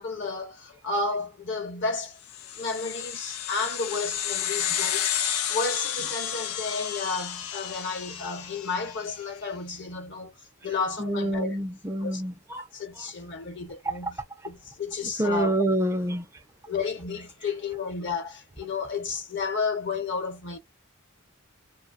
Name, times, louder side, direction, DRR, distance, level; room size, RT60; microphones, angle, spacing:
voice 1, 0.0-2.2 2.5-5.2 5.5-10.3 10.6-11.6 12.0-12.2 12.7-14.2 14.4-15.6 16.7-20.6, left 4 dB, 55° left, 1.0 m, -32 dB
sound 1, 2.3-9.1, left 10 dB, 80° left, 0.5 m, -31 dB
voice 2, 11.0-12.6 15.2-16.3, right 1 dB, 10° right, 0.4 m, -27 dB
2.7 x 2.1 x 2.3 m
head